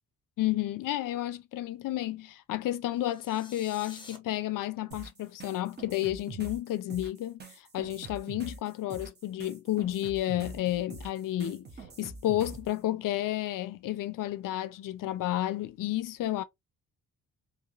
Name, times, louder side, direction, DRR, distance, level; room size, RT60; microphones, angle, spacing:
voice 1, 0.4-7.4 7.7-11.7 12.0-16.4, left 14 dB, 60° left, 0.5 m, -31 dB
sound 1, 3.0-4.2, left 3 dB, 15° left, 0.6 m, -49 dB
sound 2, 4.9-12.7, right 3 dB, 30° right, 0.6 m, -45 dB
3.1 x 2.6 x 2.3 m
wide cardioid pair, 165°, 36 cm